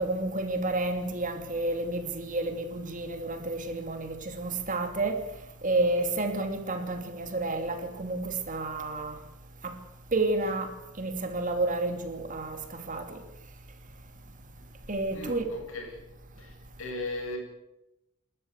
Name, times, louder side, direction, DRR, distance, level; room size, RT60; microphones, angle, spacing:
voice 1, 0.0-5.2 5.6-9.1 9.6-9.7 10.1-10.7 11.0-12.6 12.9-13.2 14.9-15.5, right 2 dB, 35° right, 2.8 m, -30 dB
voice 2, 15.1-16.0 16.4-17.4, left 2 dB, 65° left, 7.5 m, -37 dB
29.5 x 13.0 x 8.1 m
head